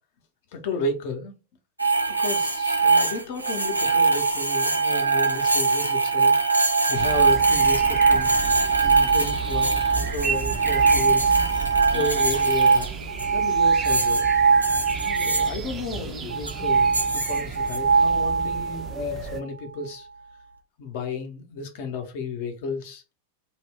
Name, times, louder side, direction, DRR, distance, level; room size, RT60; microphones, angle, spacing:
voice 1, 0.5-1.4 2.1-8.3 8.8-11.3 11.9-14.3 14.9-20.1 20.8-23.0, left 3 dB, 50° left, 0.6 m, -33 dB
sound 1, 1.8-15.5 16.3-18.9, right 4 dB, 85° right, 0.4 m, -21 dB
sound 2, 6.9-19.4, right 5 dB, 25° right, 0.5 m, -33 dB
2.2 x 2.1 x 3.5 m
figure-of-eight pair, 90°, 0 cm